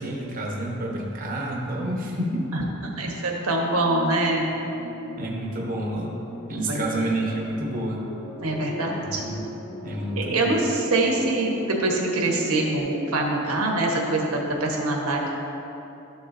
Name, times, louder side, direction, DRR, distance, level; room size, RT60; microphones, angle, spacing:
voice 1, 0.0-2.5 5.2-6.1 6.5-8.0 9.0-9.5 9.8-10.6, right 1 dB, 40° right, -2 dB, 1.0 m, -29 dB
voice 2, 3.0-4.5 6.7-7.0 8.4-9.2 10.2-15.3, right 2 dB, 75° right, -1 dB, 1.3 m, -24 dB
sound 1, 3.7-12.8, equal, ahead, 1.3 m, -38 dB
12.5 x 7.0 x 2.6 m, 2.9 s
head